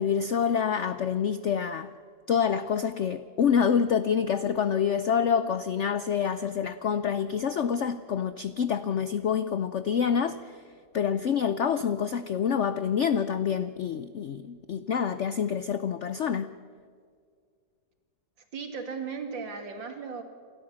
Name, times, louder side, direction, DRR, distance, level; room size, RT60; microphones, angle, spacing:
voice 1, 0.0-1.9 2.3-10.6 10.9-16.5, left 7 dB, 85° left, 12 dB, 0.6 m, -27 dB
voice 2, 18.5-20.2, right 5 dB, 80° right, 5 dB, 2.9 m, -36 dB
28.0 x 12.5 x 7.3 m, 2.1 s
omnidirectional pair, 2.0 m